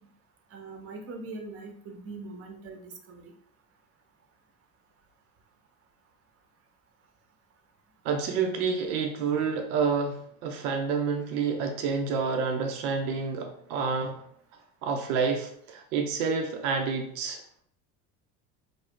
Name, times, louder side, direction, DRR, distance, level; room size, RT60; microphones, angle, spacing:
voice 1, 0.5-3.3, right 3 dB, 35° right, 4 dB, 0.6 m, -42 dB
voice 2, 8.0-14.2 14.8-17.4, right 5 dB, 80° right, 4 dB, 0.6 m, -28 dB
2.4 x 2.0 x 3.5 m, 0.63 s
hypercardioid pair, 85°, 43 cm